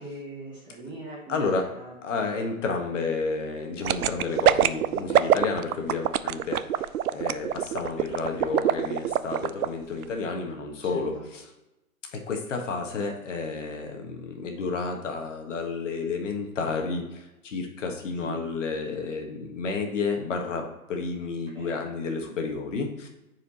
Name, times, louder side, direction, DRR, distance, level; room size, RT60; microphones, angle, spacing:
voice 1, 0.0-1.9 5.3-5.4 10.9-11.2 18.2-18.4 21.5-21.9, right 2 dB, 10° right, -4 dB, 1.0 m, -41 dB
voice 2, 1.3-1.7 2.0-11.5 12.1-23.1, left 4 dB, 55° left, 3 dB, 1.6 m, -31 dB
sound 1, 3.8-9.7 10.0-10.1, right 11 dB, 75° right, 0.5 m, -23 dB
9.6 x 4.9 x 3.0 m, 0.96 s
hypercardioid pair, 155°, 44 cm